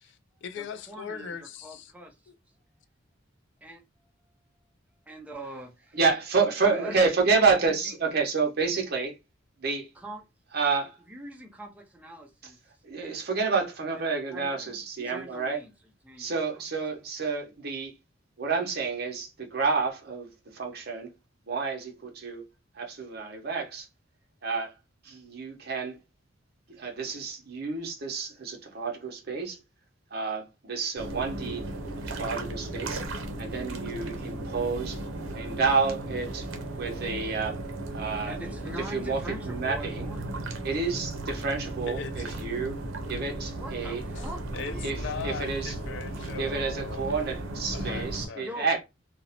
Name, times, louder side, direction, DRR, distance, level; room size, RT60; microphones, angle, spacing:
voice 1, 0.0-1.9 2.3-2.4 41.9-42.3 44.2-44.3 44.5-47.1 47.7-48.5, left 6 dB, 65° left, 0.4 m, -39 dB
voice 2, 0.6-2.2 3.6-3.8 5.1-6.0 6.6-7.0 7.2-7.9 9.9-10.2 11.1-12.6 13.9-15.7 16.0-16.3 38.2-40.2 43.5-44.9 48.3-48.8, right 1 dB, 5° right, 0.6 m, -43 dB
voice 3, 5.9-9.1 9.6-9.9 10.5-10.9 12.8-15.6 16.2-17.9 18.4-21.1 21.5-22.4 22.7-23.9 24.4-24.7 25.0-26.0 26.7-29.6 30.1-31.7 32.1-33.0 33.4-35.0 35.3-36.5 36.8-37.6 37.9-38.4 38.9-39.2 39.5-40.1 40.6-42.8 43.1-44.0 44.8-45.7 46.4-48.8, right 4 dB, 55° right, 0.7 m, -29 dB
sound 1, 31.0-48.3, right 1 dB, 90° right, 0.6 m, -36 dB
2.5 x 2.0 x 2.7 m
head